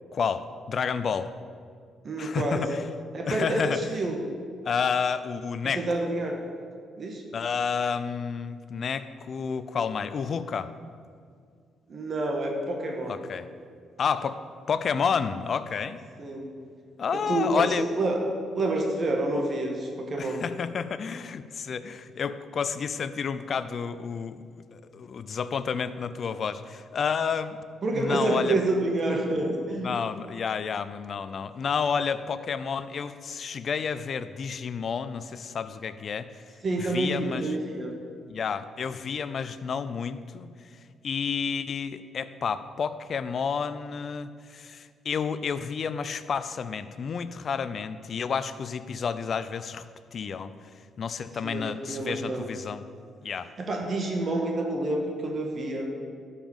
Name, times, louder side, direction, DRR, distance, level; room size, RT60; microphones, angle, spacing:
voice 1, 0.1-1.3 2.2-2.8 3.3-3.9 4.6-5.8 7.3-10.7 13.1-13.5 14.0-14.4 14.7-16.0 17.0-17.9 20.2-27.6 27.9-28.5 29.8-36.4 36.8-37.6 38.3-40.8 41.0-49.9 50.1-50.5 51.0-52.8 53.2-53.5, left 6 dB, 50° left, 13 dB, 0.5 m, -30 dB
voice 2, 2.0-2.7 3.1-4.2 5.6-6.4 7.0-7.2 11.9-13.2 16.2-16.5 17.1-18.3 18.5-20.4 27.8-29.9 36.6-38.0 51.4-52.5 53.6-55.9, right 2 dB, 45° right, 2 dB, 1.6 m, -28 dB
12.0 x 5.7 x 7.2 m, 2.1 s
cardioid pair, 90°, 0 cm